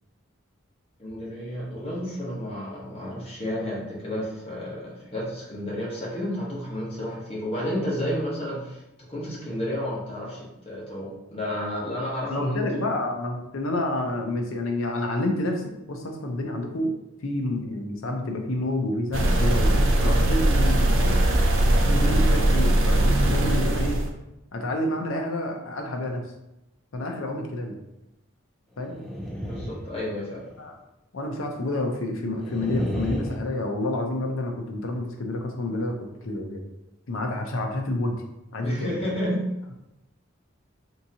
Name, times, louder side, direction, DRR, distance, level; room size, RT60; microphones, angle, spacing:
voice 1, 1.0-8.8 9.1-12.9 29.5-30.4 38.6-39.4, equal, 30° left, -6 dB, 1.1 m, -31 dB
voice 2, 12.3-16.9 17.2-21.2 21.8-24.0 24.5-26.3 26.9-27.8 28.8-29.0 30.6-30.7 31.1-36.6 37.1-38.2 38.5-39.0, left 1 dB, 75° left, 2 dB, 0.6 m, -29 dB
sound 1, 19.1-24.1, right 1 dB, 65° right, 0.5 m, -20 dB
sound 2, 28.8-30.6 32.4-33.4, equal, ahead, 0.4 m, -31 dB
3.6 x 2.9 x 2.8 m, 0.92 s
head